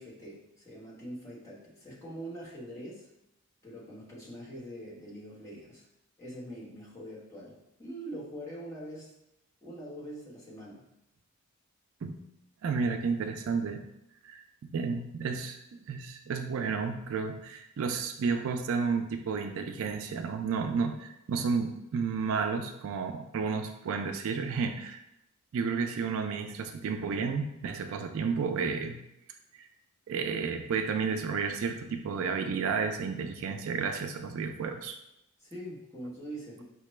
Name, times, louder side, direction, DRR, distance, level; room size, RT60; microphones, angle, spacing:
voice 1, 0.0-3.1 3.6-5.9 6.2-9.1 9.6-10.9 15.2-15.3 35.4-36.6, right 1 dB, 15° left, -7 dB, 1.1 m, -43 dB
voice 2, 12.6-13.8 14.2-15.6 15.9-25.0 25.5-29.0 29.5-29.7 30.1-35.0, right 5 dB, 65° right, 6 dB, 0.3 m, -32 dB
5.6 x 2.2 x 3.1 m, 0.85 s
head